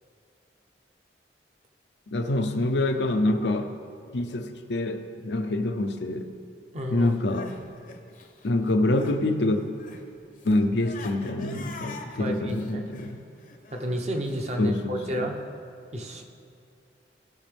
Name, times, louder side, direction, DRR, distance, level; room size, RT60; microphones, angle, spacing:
voice 1, 2.1-3.7 4.1-6.3 6.9-7.5 8.4-9.6 10.4-13.2 14.6-15.3, left 2 dB, 80° left, 6 dB, 0.7 m, -26 dB
voice 2, 6.7-7.1 12.0-12.8 13.7-15.4 15.9-16.2, equal, 40° right, 3 dB, 0.8 m, -31 dB
Crying sobbing, 7.1-9.2 9.5-14.6, left 3 dB, 45° left, 0.8 m, -45 dB
16.0 x 6.1 x 3.4 m, 2.7 s
head